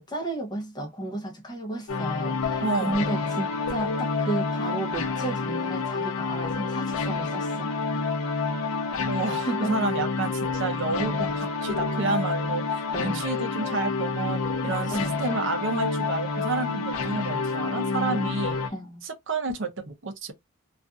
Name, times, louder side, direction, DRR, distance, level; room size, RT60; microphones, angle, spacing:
voice 1, 0.0-7.7 9.5-9.8 12.9-13.2 14.7-15.5 18.1-18.3 18.7-19.0, right 1 dB, 20° left, 0.7 m, -33 dB
sound 1, 1.9-18.7, left 4 dB, 70° left, 0.5 m, -28 dB
voice 2, 2.6-3.1 9.1-18.6 19.0-20.3, right 3 dB, 55° right, 0.6 m, -30 dB
2.5 x 2.4 x 2.3 m
head